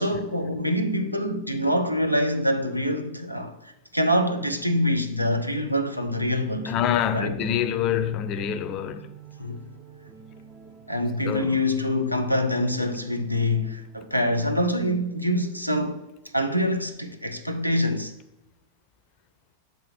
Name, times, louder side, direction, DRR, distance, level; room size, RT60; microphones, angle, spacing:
voice 1, 0.0-6.7 7.1-7.4 9.4-9.6 10.9-16.1 16.3-18.1, left 1 dB, 90° right, 0.6 m, -25 dB
sound 1, 5.5-14.6, right 6 dB, 30° right, 0.7 m, -46 dB
voice 2, 6.7-9.1 11.2-11.6, left 9 dB, 35° left, 0.5 m, -26 dB
7.0 x 3.8 x 5.8 m
figure-of-eight pair, 90°, 0 cm